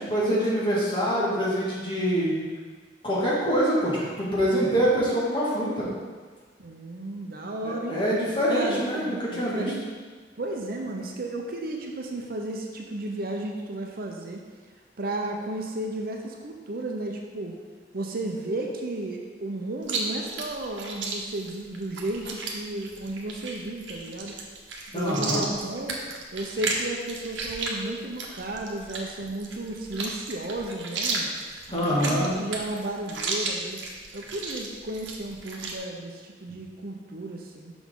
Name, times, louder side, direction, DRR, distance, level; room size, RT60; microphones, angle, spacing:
voice 1, 0.0-2.5 3.0-5.9 7.6-9.7 24.9-25.4 31.7-32.3, equal, 30° left, -7 dB, 1.9 m, -25 dB
voice 2, 6.6-8.0 8.5-9.8 10.4-14.4 15.0-17.5 17.9-24.3 24.9-26.0 26.3-31.3 31.7-33.8 34.1-37.7, right 1 dB, 55° right, 1 dB, 0.7 m, -33 dB
Chewing mastication, 19.8-35.8, right 3 dB, 85° right, 1.0 m, -34 dB
6.1 x 5.9 x 3.8 m, 1.5 s
head